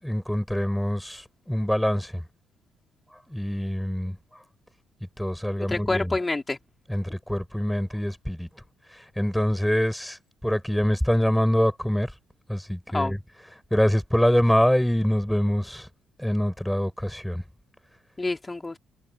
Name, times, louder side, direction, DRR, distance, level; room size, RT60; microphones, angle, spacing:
voice 1, 0.0-2.2 3.3-4.2 5.2-6.1 6.9-8.5 8.9-12.1 12.5-13.2 13.7-15.9 16.2-17.4, equal, 5° left, 7.7 m, -25 dB
voice 2, 5.6-6.6 12.9-13.1 18.2-18.8, left 2 dB, 20° left, 4.8 m, -27 dB
hypercardioid pair, 45°, 0 cm